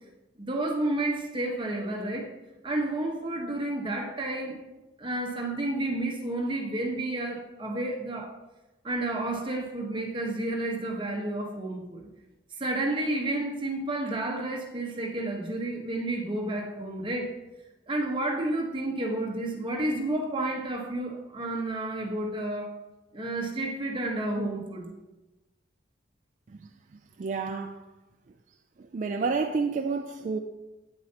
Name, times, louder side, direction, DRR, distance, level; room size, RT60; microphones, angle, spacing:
voice 1, 0.4-2.3 2.6-4.6 5.0-8.3 8.8-12.1 12.6-17.3 17.9-22.7 23.1-24.9, right 1 dB, 25° right, -1 dB, 1.1 m, -31 dB
voice 2, 27.2-27.8 28.8-30.4, right 4 dB, 40° right, 5 dB, 0.3 m, -30 dB
8.9 x 7.3 x 2.8 m, 1.0 s
head